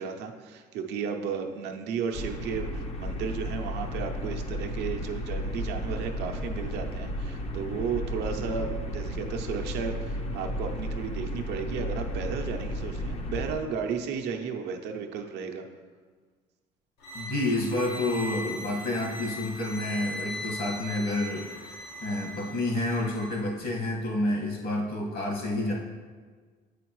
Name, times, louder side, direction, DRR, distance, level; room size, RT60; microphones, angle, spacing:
voice 1, 0.0-15.7, right 6 dB, 80° right, 4 dB, 0.7 m, -34 dB
sound 1, 2.1-13.5, equal, 35° left, 0.6 m, -33 dB
sound 2, 17.0-23.4, left 1 dB, 80° left, 1.3 m, -39 dB
voice 2, 17.1-25.7, left 1 dB, 60° left, -3 dB, 1.9 m, -29 dB
8.0 x 4.9 x 3.1 m, 1.5 s
cardioid pair, 110°, 17 cm